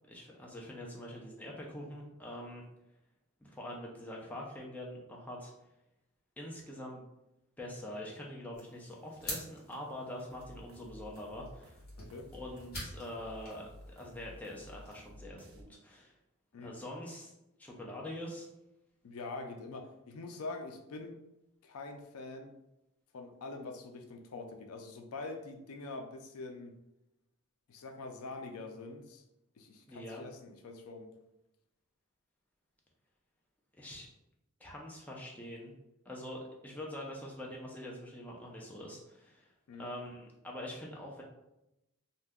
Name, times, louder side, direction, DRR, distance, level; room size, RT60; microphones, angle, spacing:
voice 1, 0.1-2.6 3.4-5.5 6.4-7.0 7.6-11.8 12.3-16.1 16.6-17.3 17.6-18.5 29.9-30.2 33.8-34.1 34.6-35.7 36.1-39.5 39.8-41.2, left 1 dB, 5° left, -2 dB, 0.4 m, -44 dB
sound 1, 8.5-14.9, left 1 dB, 45° left, 1.1 m, -48 dB
sound 2, 10.3-15.6, equal, 60° right, 0.5 m, -53 dB
voice 2, 12.0-12.3 16.5-16.8 19.0-21.2 21.6-22.5 23.1-26.8 27.7-29.2 29.6-31.1 39.7-39.9, left 3 dB, 75° left, 5 dB, 0.4 m, -44 dB
2.7 x 2.2 x 3.5 m, 0.89 s
head